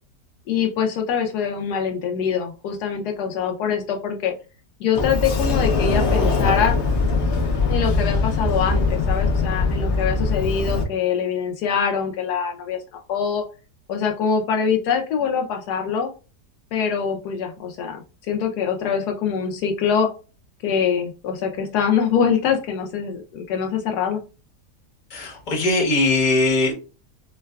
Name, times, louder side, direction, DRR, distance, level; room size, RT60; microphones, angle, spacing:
voice 1, 0.5-4.3 4.8-6.8 7.7-13.4 13.9-16.1 16.7-20.1 20.6-24.2, left 7 dB, 75° left, 3 dB, 1.1 m, -24 dB
Sliding door, 5.0-10.8, left 3 dB, 55° left, 0.9 m, -21 dB
voice 2, 25.1-26.7, left 2 dB, 30° left, -1 dB, 1.0 m, -20 dB
4.6 x 2.2 x 2.2 m, 0.33 s
omnidirectional pair, 1.8 m